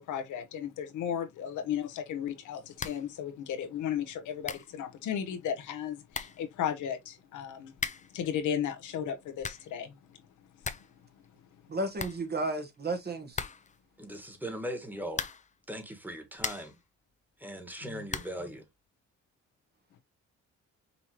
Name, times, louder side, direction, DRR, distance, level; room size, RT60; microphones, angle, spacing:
voice 1, 0.0-7.7 8.1-10.0 10.6-10.7 17.8-18.1, left 9 dB, 80° left, 1.0 m, -35 dB
sound 1, 2.8-3.1 3.4-3.5 4.1-4.2 4.4-4.8 5.7-5.8 6.1-6.5 7.7-8.2 9.1-9.8 10.1-10.2 10.4-11.0 11.2-11.3 11.6-11.7 11.9-12.7 13.3-13.8 15.1-15.6 16.1-16.8 18.1-18.5, left 5 dB, 25° left, 0.5 m, -38 dB
voice 2, 11.7-13.4, right 2 dB, 35° right, 1.2 m, -33 dB
voice 3, 14.0-15.3 15.7-16.8 17.4-18.6, equal, 5° right, 1.7 m, -39 dB
5.4 x 3.0 x 3.0 m
cardioid pair, 90°, 30 cm